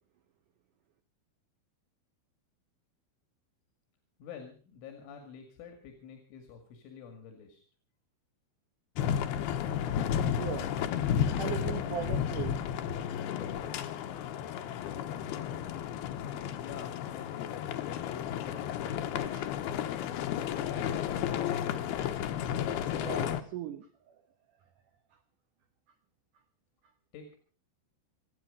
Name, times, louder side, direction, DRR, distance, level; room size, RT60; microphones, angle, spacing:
voice 1, 4.2-7.6 16.6-19.0 19.6-20.0 20.3-21.8 27.1-27.4, left 7 dB, 90° left, 5 dB, 4.7 m, -48 dB
sound 1, 9.0-23.4, left 9 dB, 70° left, 2.7 m, -32 dB
voice 2, 9.9-10.7 11.4-12.6 19.3-19.6 23.0-24.2, right 9 dB, 80° right, 9 dB, 1.8 m, -39 dB
26.5 x 9.4 x 5.3 m, 0.40 s
omnidirectional pair, 5.4 m